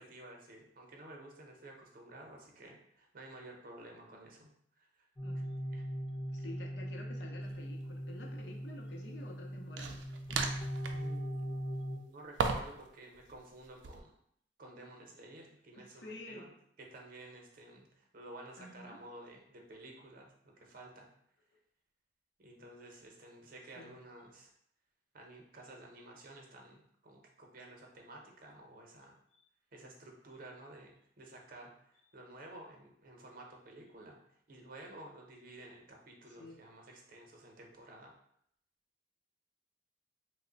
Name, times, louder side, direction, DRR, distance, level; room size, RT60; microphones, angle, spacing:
voice 1, 0.0-5.1 5.7-5.8 10.9-14.1 14.6-16.5 16.8-21.1 22.4-24.5 25.1-29.2 29.7-34.2 34.5-38.1, right 2 dB, 50° right, 1 dB, 0.7 m, -52 dB
voice 2, 5.2-5.6 6.3-10.1 15.7-16.5 18.6-19.0 21.5-21.6 23.8-24.0 36.3-36.6, left 1 dB, 70° left, 1 dB, 0.6 m, -50 dB
sound 1, 5.2-12.0, equal, 15° left, 0.5 m, -40 dB
sound 2, 7.4-7.6 9.8-11.1 12.4-12.9 13.1-14.0, right 4 dB, 90° right, 0.4 m, -36 dB
3.2 x 2.0 x 3.8 m, 0.70 s
head